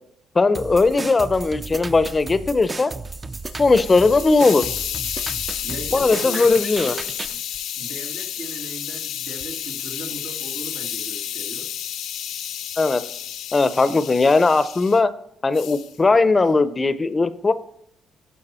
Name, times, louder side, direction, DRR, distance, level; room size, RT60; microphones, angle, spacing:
voice 1, 0.3-2.9 3.6-4.6 5.9-6.9 12.8-13.0 13.5-15.1 15.4-17.5, left 3 dB, 25° left, 13 dB, 0.6 m, -18 dB
sound 1, 0.5-7.4, right 3 dB, 25° right, 0.5 m, -34 dB
Hiss, 3.2-15.0 15.5-15.9, left 10 dB, 85° left, 0.7 m, -31 dB
voice 2, 5.6-7.4 7.8-11.7, right 1 dB, 80° right, 1 dB, 1.9 m, -37 dB
11.5 x 4.8 x 4.3 m, 0.72 s
cardioid pair, 90°, 0 cm